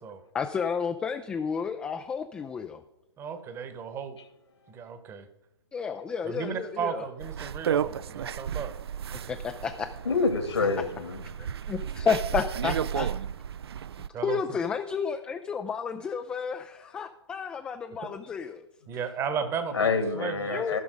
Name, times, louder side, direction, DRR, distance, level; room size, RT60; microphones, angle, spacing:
voice 1, 0.3-2.8 5.7-7.0 9.3-9.9 11.4-13.1 14.2-18.7 20.5-20.8, left 6 dB, 5° left, 7 dB, 0.4 m, -31 dB
voice 2, 3.2-4.2 4.7-5.3 6.2-8.7 14.1-14.6 18.9-20.6, right 6 dB, 15° right, 9 dB, 1.1 m, -34 dB
sound 1, 7.2-14.1, right 8 dB, 60° right, 0.4 m, -33 dB
voice 3, 10.0-11.2 18.8-18.9 19.7-20.8, left 4 dB, 70° left, 6 dB, 2.4 m, -27 dB
15.5 x 5.9 x 5.1 m, 0.92 s
figure-of-eight pair, 125°, 15 cm